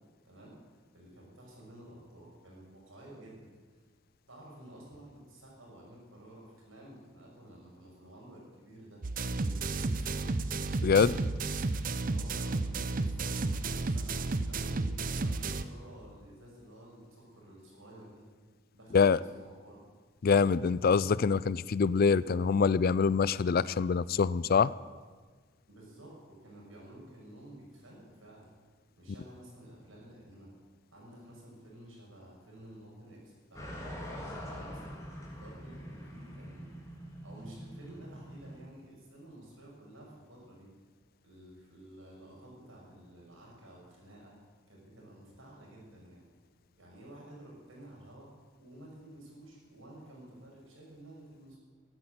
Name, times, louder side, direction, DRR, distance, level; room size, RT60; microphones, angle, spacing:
voice 1, 0.9-3.5 4.3-9.0 9.4-10.3 12.1-14.9 15.2-18.2 18.7-19.8 25.7-28.5 28.9-30.5 30.9-34.8 35.2-36.8 37.2-40.7 41.2-44.4 44.7-46.2 46.8-51.6, right 1 dB, 80° right, -3 dB, 6.0 m, -52 dB
sound 1, 9.0-15.6, right 3 dB, 45° right, 0.7 m, -32 dB
voice 2, 10.8-11.2 18.9-19.2 20.2-24.7, left 5 dB, 50° left, 19 dB, 0.4 m, -25 dB
sound 2, 33.5-38.6, equal, 15° left, 3.4 m, -44 dB
13.5 x 11.5 x 8.0 m, 1.5 s
head